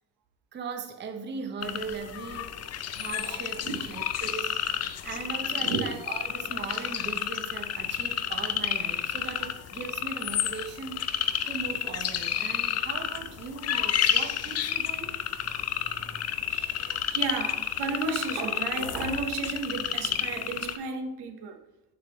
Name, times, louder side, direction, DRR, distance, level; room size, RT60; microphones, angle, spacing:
voice 1, 0.5-2.6 2.9-15.5 15.8-16.2, right 5 dB, 30° right, 0.6 m, -39 dB
sound 1, 1.6-20.8, left 10 dB, 40° left, 0.4 m, -31 dB
voice 2, 5.6-5.9 16.5-21.6, right 4 dB, 75° right, 1.0 m, -33 dB
7.6 x 5.2 x 2.9 m
cardioid pair, 135°, 40 cm